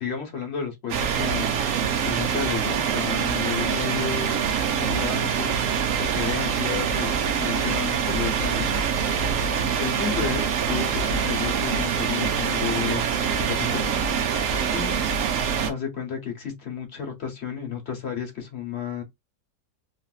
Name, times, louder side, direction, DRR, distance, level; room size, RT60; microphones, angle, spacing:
voice 1, 0.0-1.6 2.0-5.7 5.9-8.6 9.8-13.0 13.4-14.0 14.7-15.0 15.7-19.0, left 7 dB, 50° left, 0.8 m, -32 dB
sound 1, 0.9-15.7, right 7 dB, 75° right, 0.7 m, -25 dB
3.1 x 2.5 x 2.3 m
omnidirectional pair, 2.0 m